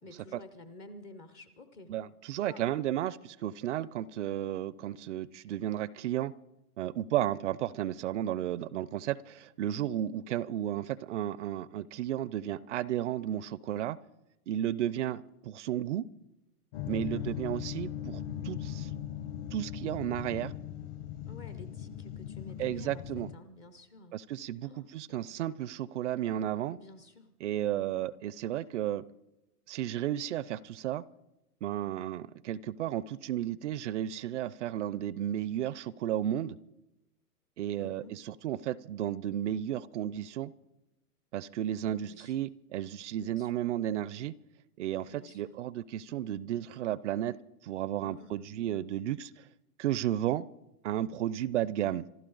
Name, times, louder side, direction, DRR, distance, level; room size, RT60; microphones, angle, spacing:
voice 1, 0.0-1.9 2.4-2.7 16.9-17.3 21.3-24.2 24.6-25.4 26.7-27.3 27.6-27.9 37.8-38.2 42.0-42.4 43.2-43.6 45.0-45.6 48.0-48.5, left 1 dB, 15° left, 11 dB, 0.4 m, -51 dB
voice 2, 1.9-6.3 6.8-14.0 14.5-16.1 16.9-18.9 19.5-20.5 22.6-23.3 24.1-26.8 27.4-29.0 29.7-31.0 31.6-36.6 37.6-38.0 38.4-40.5 41.3-44.3 44.8-47.4 47.6-49.5 49.8-50.5 50.8-52.1, right 12 dB, 50° right, 21 dB, 0.5 m, -33 dB
sound 1, 16.7-23.4, left 10 dB, 45° left, 1.0 m, -39 dB
26.5 x 12.0 x 3.9 m, 0.95 s
hypercardioid pair, 135°, 47 cm